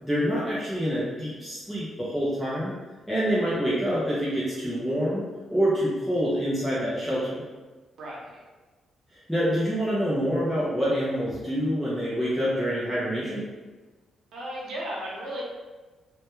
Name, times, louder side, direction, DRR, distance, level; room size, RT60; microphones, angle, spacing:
voice 1, 0.0-2.7 3.1-5.2 5.5-7.5 9.3-13.4, equal, ahead, -10 dB, 0.5 m, -26 dB
voice 2, 8.0-8.4 14.3-15.4, equal, 70° right, -5 dB, 0.7 m, -35 dB
2.2 x 2.2 x 3.0 m, 1.3 s
cardioid pair, 145°, 0 cm